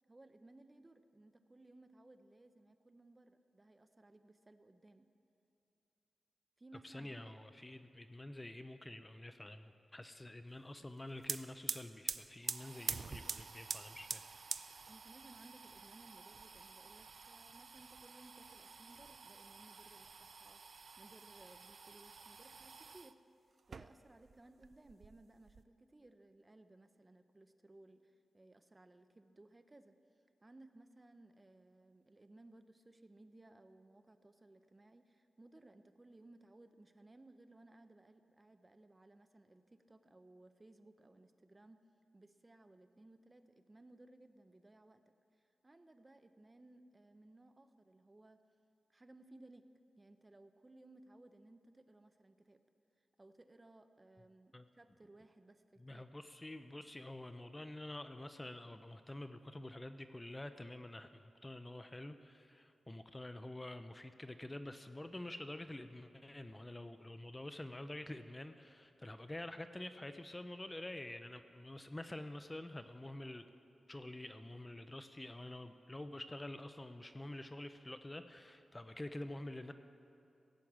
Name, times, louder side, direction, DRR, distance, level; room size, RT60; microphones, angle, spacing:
voice 1, 0.1-5.1 6.6-7.4 14.9-23.2 23.7-30.0 30.4-41.8 42.1-48.4 48.9-49.7 50.0-52.6 53.0-56.1, right 2 dB, 25° right, 9 dB, 0.7 m, -61 dB
voice 2, 6.8-14.3 14.8-14.9 54.5-54.7 55.8-73.5 73.9-79.7, left 1 dB, 20° left, 9 dB, 0.6 m, -48 dB
sound 1, 10.9-11.0 11.2-23.1 23.6-24.4 24.6-25.6, right 5 dB, 60° right, 0.5 m, -47 dB
16.5 x 7.7 x 8.6 m, 2.7 s
cardioid pair, 85°, 0 cm